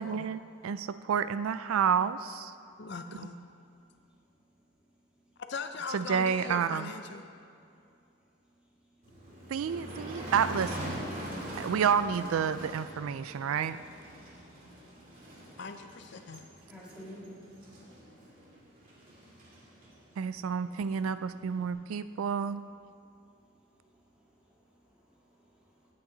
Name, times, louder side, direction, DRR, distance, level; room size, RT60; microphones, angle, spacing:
voice 1, 0.0-2.5 3.2-3.3 5.9-6.9 9.5-11.0 11.6-13.8 20.2-22.6, right 7 dB, 75° right, 14 dB, 0.3 m, -30 dB
voice 2, 2.8-3.4 5.5-7.2 15.6-16.4, left 4 dB, 55° left, 7 dB, 0.5 m, -40 dB
Motor vehicle (road), 9.0-21.7, equal, 40° right, 2.4 m, -44 dB
voice 3, 16.7-17.4 19.2-19.3 23.3-25.9, equal, 5° right, -6 dB, 2.4 m, -53 dB
17.0 x 8.9 x 3.9 m, 2.6 s
head